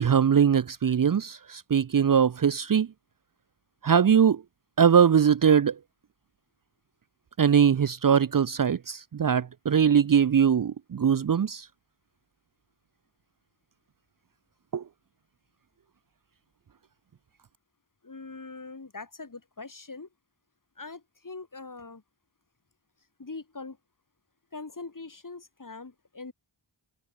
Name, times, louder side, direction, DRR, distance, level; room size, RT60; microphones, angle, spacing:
voice 1, 0.0-2.9 3.8-4.4 4.8-5.8 7.4-11.7 14.7-14.8, right 7 dB, 45° right, 0.6 m, -21 dB
voice 2, 18.0-20.1 20.8-22.0 23.2-23.8 24.5-26.3, left 3 dB, 45° left, 3.1 m, -42 dB
wide cardioid pair, 50°, 46 cm